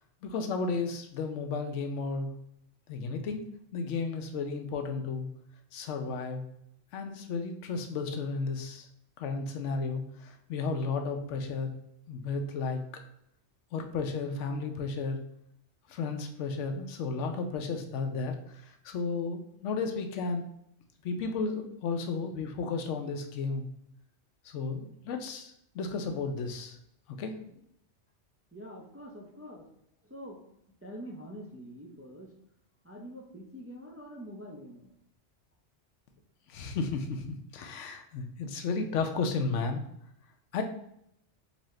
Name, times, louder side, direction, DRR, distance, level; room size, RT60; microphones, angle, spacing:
voice 1, 0.2-2.3 2.9-3.4 3.7-5.3 5.7-6.4 6.9-8.9 9.2-11.7 12.1-12.8 13.7-15.2 15.9-18.4 18.8-20.5 21.0-23.7 24.5-26.8 27.2-27.3 36.5-39.8 40.5-40.6, left 4 dB, 90° left, 5 dB, 0.9 m, -33 dB
voice 2, 28.5-29.7 30.0-30.4 30.8-32.3 32.8-34.9, equal, 20° right, -2 dB, 0.3 m, -45 dB
4.0 x 2.7 x 3.1 m, 0.74 s
omnidirectional pair, 1.2 m